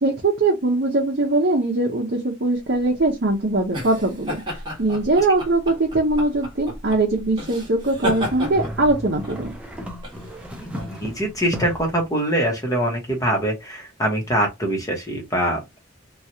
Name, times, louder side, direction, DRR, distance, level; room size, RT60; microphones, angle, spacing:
voice 1, 0.0-4.4 4.8-9.5, right 2 dB, 55° right, 0.7 m, -21 dB
sound 1, 2.7-11.9, equal, 25° right, 1.2 m, -33 dB
sound 2, 7.9-12.0, equal, 5° right, 0.6 m, -35 dB
voice 2, 10.6-15.8, right 1 dB, 15° left, 1.0 m, -24 dB
3.1 x 2.3 x 2.7 m
head